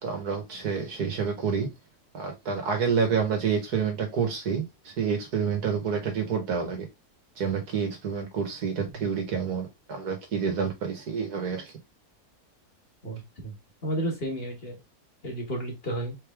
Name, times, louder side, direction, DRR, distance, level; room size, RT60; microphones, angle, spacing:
voice 1, 0.0-1.7 2.1-4.7 5.0-6.9 7.4-11.7, right 6 dB, 75° right, 1.9 m, -28 dB
voice 2, 13.0-13.5 13.8-14.7 15.2-16.1, right 1 dB, 40° left, 1.6 m, -32 dB
4.5 x 3.2 x 3.4 m
omnidirectional pair, 1.7 m